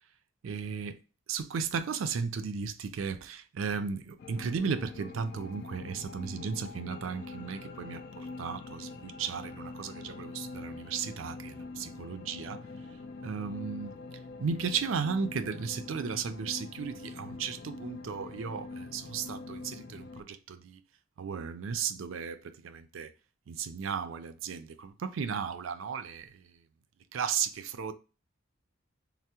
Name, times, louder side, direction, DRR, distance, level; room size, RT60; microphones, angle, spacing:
voice 1, 0.4-1.0 1.3-12.6 13.2-13.9 14.4-20.8 21.2-23.1 23.5-26.6 27.1-27.9, right 6 dB, 75° right, 0.4 m, -35 dB
sound 1, 4.2-20.2, left 3 dB, 55° left, 0.3 m, -44 dB
3.4 x 2.0 x 2.8 m
head